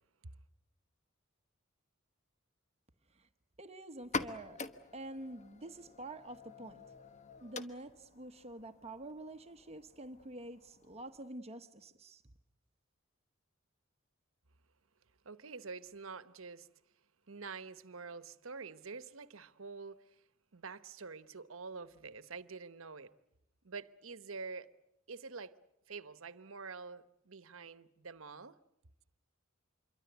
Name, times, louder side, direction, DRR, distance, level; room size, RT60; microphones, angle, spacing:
voice 1, 3.6-4.6 4.9-6.8 7.4-12.2, right 1 dB, 30° right, 1.1 m, -47 dB
sound 1, 4.0-11.4, left 3 dB, 35° left, 1.3 m, -46 dB
voice 2, 15.2-16.7 17.3-20.2 20.5-23.1 23.6-24.7 25.1-25.6 25.9-28.6, right 4 dB, 85° right, 1.0 m, -47 dB
27.0 x 23.5 x 8.1 m
head